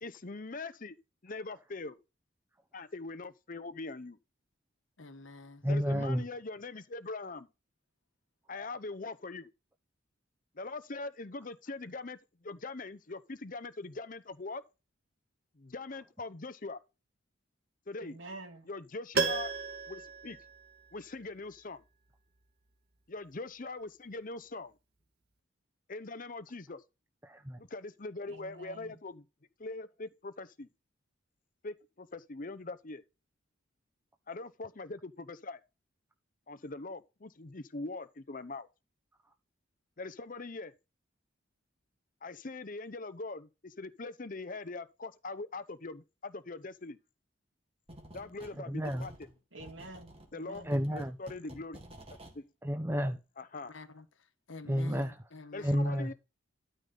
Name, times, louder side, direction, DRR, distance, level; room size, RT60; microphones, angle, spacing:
voice 1, 0.0-0.9 1.2-2.0 2.7-4.2 5.7-7.5 8.5-9.5 10.5-14.6 15.6-16.8 17.9-18.2 18.7-19.5 19.9-20.4 20.9-21.8 23.1-24.7 25.9-26.8 27.6-29.2 29.6-30.7 31.6-33.0 34.3-35.6 36.5-38.7 40.0-40.7 42.2-47.0 48.1-49.3 50.3-51.8 52.4-52.5 53.4-53.8 55.5-56.1, left 3 dB, 45° left, 0.8 m, -42 dB
voice 2, 5.0-5.6 53.7-54.1 54.5-55.9, left 2 dB, 80° left, 1.3 m, -48 dB
voice 3, 5.6-6.2 27.2-27.6 48.7-49.0 50.7-51.2 52.6-53.2 54.7-55.1 55.6-56.1, equal, 10° right, 0.8 m, -31 dB
voice 4, 18.0-18.7 28.3-29.0 49.5-50.7, right 2 dB, 75° right, 3.1 m, -48 dB
Piano, 19.1-21.2 21.5-21.6, right 5 dB, 55° right, 2.1 m, -34 dB
sound 1, 47.9-48.6 48.8-52.4, right 1 dB, 30° right, 2.1 m, -51 dB
12.5 x 5.3 x 3.9 m
head